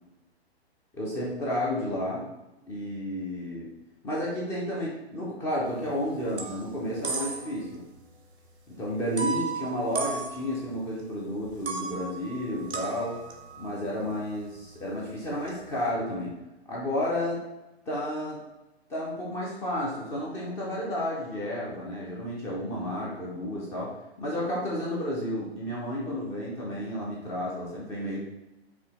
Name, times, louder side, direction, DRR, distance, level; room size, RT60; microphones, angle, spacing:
voice 1, 0.9-2.3 2.7-3.7 4.0-7.9 8.7-13.2 13.6-16.4 16.7-17.4 17.9-18.4 18.9-28.2, left 1 dB, 10° left, -4 dB, 0.3 m, -31 dB
sound 1, 5.7-6.0 6.2-7.7 8.0-8.1 9.2-11.0 11.4-15.8, right 5 dB, 90° right, 0.8 m, -36 dB
4.8 x 2.7 x 2.8 m, 0.99 s
hypercardioid pair, 125°, 32 cm